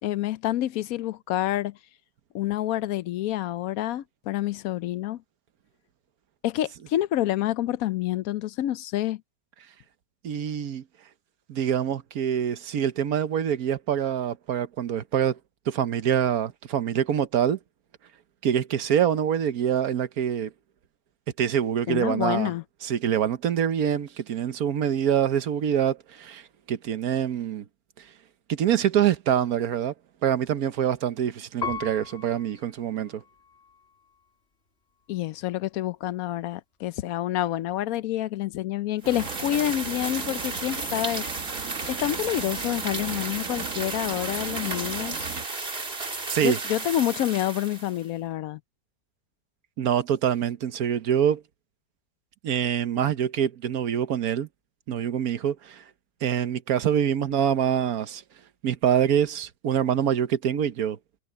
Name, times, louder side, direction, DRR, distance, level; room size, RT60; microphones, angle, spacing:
voice 1, 0.0-1.8 2.3-5.2 6.4-9.2 21.9-22.6 35.1-41.3 41.9-45.3 46.4-48.6, left 13 dB, 75° left, 1.0 m, -28 dB
voice 2, 10.2-10.8 11.5-15.4 15.7-17.6 18.4-20.5 21.4-22.5 22.8-26.4 26.7-27.6 28.5-29.9 30.2-33.2 46.3-46.6 49.8-51.4 52.4-54.5 54.9-55.8 56.2-58.2 58.6-61.0, right 9 dB, 80° right, 1.4 m, -25 dB
Piano, 31.6-34.4 35.0-35.7, left 6 dB, 40° left, 1.9 m, -39 dB
sound 1, 39.0-48.0, right 3 dB, 40° right, 2.3 m, -33 dB
Traffic noise roadway noise, 39.0-45.5, right 6 dB, 60° right, 1.6 m, -39 dB
omnidirectional pair, 1.6 m